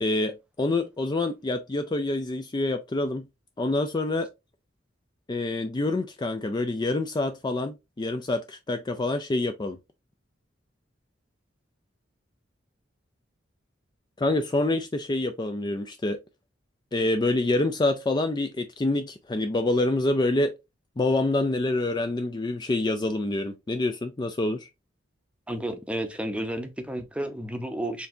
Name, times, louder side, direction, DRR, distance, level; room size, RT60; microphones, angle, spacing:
voice 1, 0.0-3.3 3.6-4.3 5.3-9.8 14.2-16.2 16.9-20.5 21.0-24.7, left 2 dB, 25° left, 0.4 m, -26 dB
voice 2, 25.5-28.1, right 1 dB, 5° right, 0.7 m, -32 dB
4.6 x 3.3 x 2.7 m
head